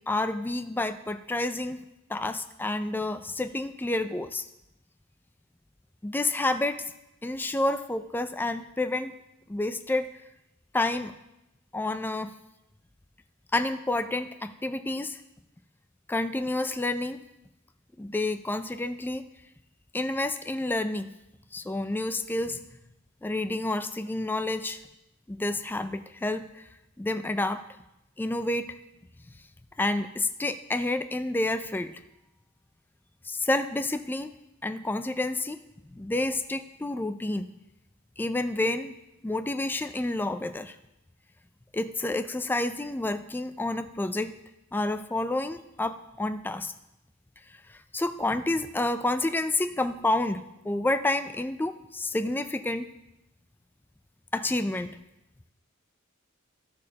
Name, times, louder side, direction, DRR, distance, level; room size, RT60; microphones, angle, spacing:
voice 1, 0.1-1.8 2.1-4.5 6.0-6.8 7.2-9.1 9.5-10.1 10.7-11.1 11.7-12.3 13.5-15.2 16.1-17.2 18.0-19.2 19.9-21.1 21.5-22.6 23.2-24.8 25.3-26.6 27.0-27.6 28.2-28.7 29.8-31.9 33.2-34.3 34.6-35.6 36.0-37.5 38.2-38.9 39.2-40.8 41.7-44.3 44.7-46.7 47.7-52.9 54.3-55.0, left 2 dB, 10° left, 9 dB, 0.3 m, -29 dB
14.5 x 6.4 x 2.8 m, 0.90 s
head